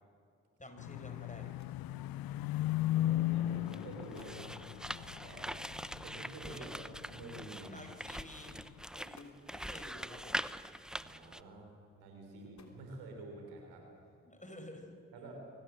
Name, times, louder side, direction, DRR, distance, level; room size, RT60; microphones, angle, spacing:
voice 1, 0.6-1.5 6.5-6.7 7.7-10.5 14.2-14.9, left 1 dB, 20° left, 5 dB, 5.2 m, -51 dB
sound 1, 0.8-7.9 8.2-8.7, left 14 dB, 70° left, 0.5 m, -36 dB
sound 2, 1.6-2.0 3.0-3.2 3.8-3.9 4.1-4.5 6.5-7.4 8.3-8.5 9.0-9.6 10.9-11.4 12.2-13.3, left 3 dB, 45° left, 3.6 m, -61 dB
voice 2, 2.9-5.5 6.0-6.7 7.1-7.9 10.8-13.9 15.1-15.4, right 2 dB, 90° right, 2 dB, 4.0 m, -49 dB
sound 3, 3.6-11.4, equal, ahead, 0.8 m, -43 dB
24.0 x 18.5 x 7.6 m, 2.3 s
hypercardioid pair, 40°, 38 cm